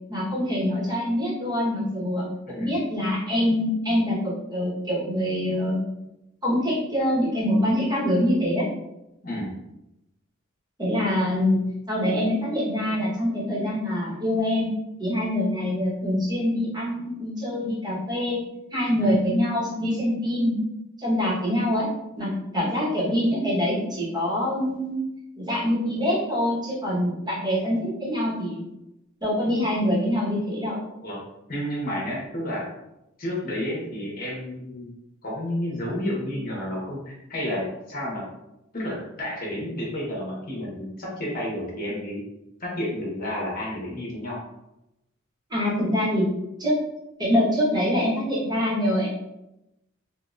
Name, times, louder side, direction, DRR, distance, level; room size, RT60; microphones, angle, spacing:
voice 1, 0.1-5.8 6.4-8.6 10.8-11.6 11.9-14.7 15.0-18.4 18.7-20.6 21.0-21.9 22.2-24.9 25.4-28.7 29.2-30.8 45.5-46.3 46.6-46.8 47.2-49.1, left 1 dB, 20° right, -7 dB, 1.2 m, -24 dB
voice 2, 31.5-32.7 33.2-34.9 35.2-38.2 38.7-42.2 42.6-44.4, left 1 dB, 45° left, -4 dB, 1.1 m, -31 dB
3.7 x 2.3 x 2.5 m, 0.89 s
head